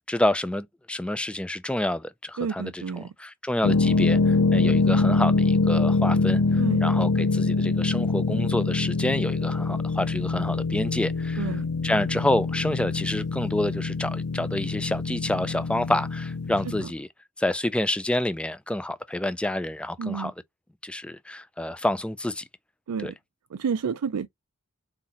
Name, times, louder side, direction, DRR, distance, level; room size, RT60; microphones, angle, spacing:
voice 1, 0.0-17.1 17.4-20.3 20.8-22.4 23.0-23.1, left 1 dB, 5° left, 0.3 m, -28 dB
voice 2, 2.4-3.1 6.6-6.9 11.4-11.7 20.0-20.3 22.9-23.1 23.5-24.3, right 6 dB, 90° right, 0.4 m, -30 dB
sound 1, 3.6-16.8, left 3 dB, 80° left, 0.5 m, -24 dB
4.1 x 3.9 x 2.9 m
head